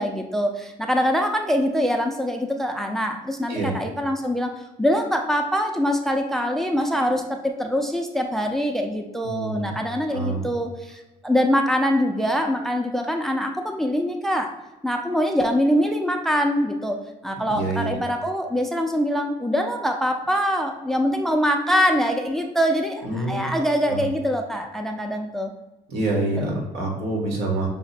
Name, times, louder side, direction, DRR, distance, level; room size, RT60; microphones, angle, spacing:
voice 1, 0.0-14.5 14.8-25.5 26.4-26.5, equal, ahead, 4 dB, 0.4 m, -24 dB
voice 2, 9.2-9.7 10.1-10.4 17.5-17.9 23.0-23.5 23.9-24.0 25.9-27.7, right 2 dB, 80° right, 0 dB, 1.4 m, -26 dB
5.7 x 2.1 x 4.2 m, 1.0 s
cardioid pair, 110°, 17 cm